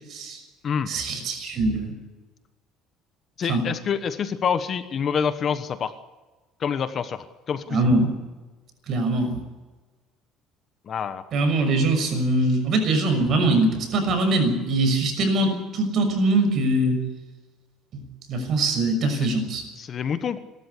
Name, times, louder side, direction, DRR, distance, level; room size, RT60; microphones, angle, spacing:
voice 1, 0.1-0.4 0.9-1.9 3.5-3.7 7.7-8.1 8.9-9.4 11.3-17.0 17.9-18.0 18.3-19.6, right 2 dB, 50° right, 6 dB, 6.3 m, -22 dB
voice 2, 3.4-5.9 6.6-7.9 10.9-11.2 19.1-19.3 19.8-20.4, left 7 dB, 40° left, 11 dB, 1.2 m, -27 dB
28.0 x 13.0 x 8.4 m, 1.2 s
cardioid pair, 140°, 0 cm